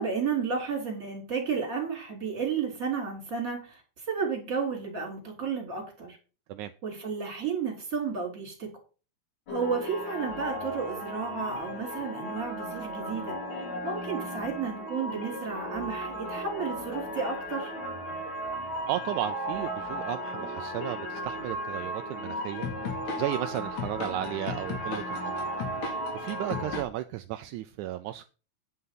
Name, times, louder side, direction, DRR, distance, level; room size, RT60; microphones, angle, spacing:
voice 1, 0.0-6.2 6.8-8.7 9.5-13.4 13.8-17.7, right 5 dB, 25° right, 2 dB, 3.7 m, -32 dB
sound 1, 9.5-26.8, equal, 70° left, 3.7 m, -35 dB
voice 2, 18.9-22.7 23.2-25.3 26.1-28.2, right 14 dB, 80° right, 9 dB, 1.9 m, -34 dB
9.7 x 5.7 x 5.9 m, 0.35 s
omnidirectional pair, 3.5 m